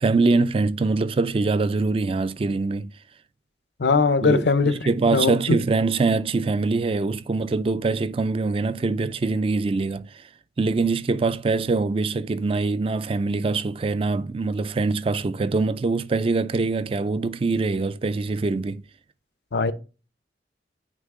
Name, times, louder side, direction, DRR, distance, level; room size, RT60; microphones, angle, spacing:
voice 1, 0.0-2.9 4.2-10.2 10.6-18.8, right 3 dB, 30° right, 0.3 m, -23 dB
voice 2, 3.8-4.8 5.1-5.6 19.5-19.7, left 4 dB, 75° left, 0.6 m, -20 dB
9.3 x 3.2 x 3.5 m
head